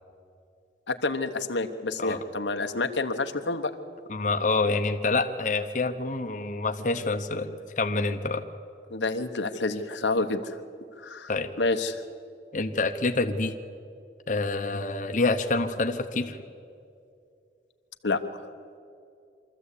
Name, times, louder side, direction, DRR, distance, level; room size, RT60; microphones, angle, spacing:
voice 1, 0.9-3.7 8.9-10.6 11.0-11.3 11.6-12.0 18.0-18.2, left 3 dB, 85° left, 6 dB, 1.1 m, -28 dB
voice 2, 4.1-8.4 11.3-11.5 12.5-13.5 14.3-16.4, left 3 dB, 45° left, 5 dB, 0.9 m, -27 dB
24.0 x 14.0 x 8.4 m, 2.5 s
head